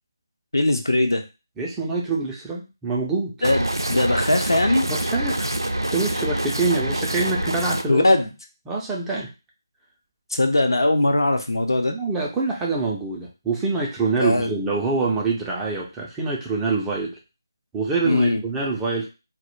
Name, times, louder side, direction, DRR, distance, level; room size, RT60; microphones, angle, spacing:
voice 1, 0.5-1.2 3.4-4.9 7.9-8.3 10.3-11.9 14.2-14.5 18.0-18.4, left 2 dB, 75° left, 5 dB, 0.5 m, -20 dB
voice 2, 1.6-3.3 4.9-5.5 5.9-8.0 8.7-9.3 11.9-17.2 17.7-19.1, right 3 dB, 10° right, -3 dB, 0.3 m, -25 dB
sound 1, 3.4-7.8, right 1 dB, 90° right, 0.4 m, -26 dB
2.1 x 2.0 x 2.9 m, 0.28 s
figure-of-eight pair, 160°, 2 cm